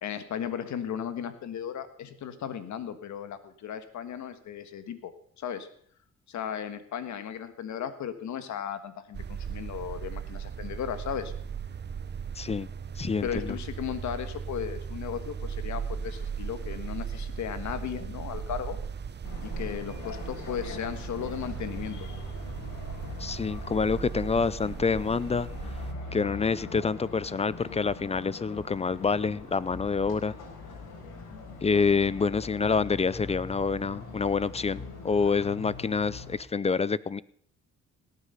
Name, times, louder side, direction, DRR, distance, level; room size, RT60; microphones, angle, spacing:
voice 1, 0.0-5.7 6.3-11.3 13.2-18.8 19.4-22.1, left 8 dB, 70° left, 10 dB, 1.5 m, -36 dB
sound 1, 9.1-25.9, right 6 dB, 35° right, 0.8 m, -37 dB
voice 2, 12.4-12.7 13.0-13.6 23.2-25.5 26.1-30.3 31.6-37.2, left 5 dB, 20° left, 20 dB, 0.4 m, -27 dB
sound 2, 19.2-36.4, left 4 dB, 85° left, 4.4 m, -42 dB
18.0 x 8.4 x 5.6 m, 0.62 s
cardioid pair, 90°, 30 cm